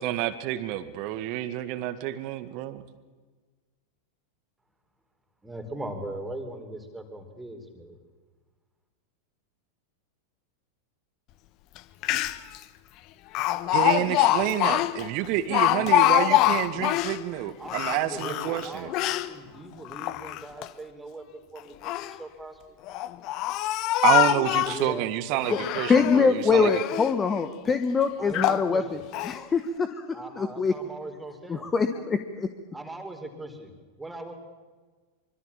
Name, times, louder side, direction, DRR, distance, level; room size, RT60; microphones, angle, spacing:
voice 1, 0.0-2.9 13.7-18.9 24.0-26.7, right 13 dB, 45° right, 13 dB, 1.8 m, -28 dB
voice 2, 5.4-8.0 17.6-22.8 24.5-25.9 28.2-29.0 30.1-31.7 32.7-33.7 34.0-34.3, right 1 dB, 10° right, 6 dB, 4.4 m, -40 dB
Speech, 11.8-11.9 12.0-12.6 13.3-17.2 17.6-19.3 19.8-20.7 21.6-22.2 22.9-24.9 25.4-26.2 26.6-27.1 27.7-27.8 28.3-28.7 29.1-29.4, left 15 dB, 40° left, 1.2 m, -25 dB
voice 3, 25.9-29.0 29.2-30.7 31.5-32.5, left 5 dB, 20° left, 9 dB, 1.5 m, -24 dB
25.5 x 25.0 x 7.4 m, 1.4 s
figure-of-eight pair, 90°, 0 cm